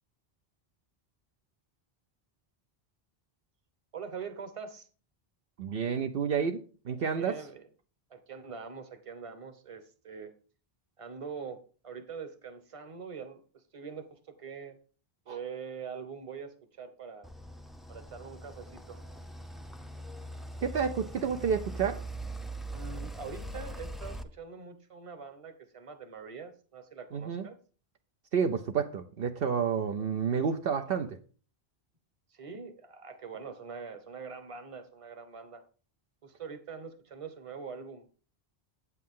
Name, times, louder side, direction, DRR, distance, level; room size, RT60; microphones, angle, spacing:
voice 1, 3.9-4.9 7.1-7.6 8.1-10.3 11.0-14.8 15.3-17.3 17.9-19.0 22.7-27.6 32.3-35.6 36.2-38.1, right 6 dB, 35° right, 1.0 m, -43 dB
voice 2, 5.6-7.4 15.3-15.4 20.6-22.0 27.1-27.5 28.3-31.2, right 6 dB, 70° right, 0.9 m, -30 dB
sound 1, 17.2-24.2, right 1 dB, ahead, 0.4 m, -41 dB
8.5 x 8.4 x 3.6 m
omnidirectional pair, 1.0 m